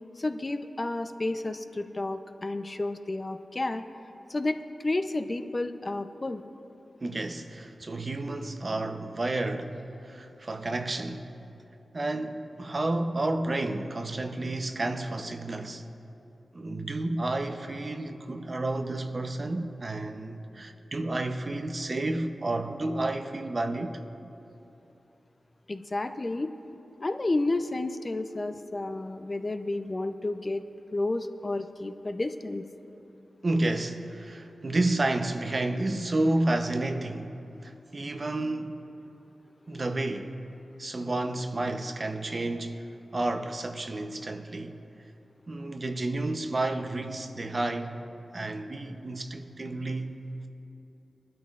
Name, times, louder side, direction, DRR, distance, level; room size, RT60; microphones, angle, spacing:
voice 1, 0.2-3.8 4.3-6.4 25.7-26.5 27.0-30.6 30.9-32.6, left 2 dB, 40° left, 0.6 m, -31 dB
voice 2, 7.0-11.3 11.9-15.8 16.5-24.0 33.4-37.4 37.6-38.9 39.7-40.3 40.8-42.9 43.1-44.8 45.5-48.0 48.3-50.2, right 2 dB, 45° right, 0.8 m, -31 dB
21.5 x 12.0 x 2.5 m
cardioid pair, 55°, 0 cm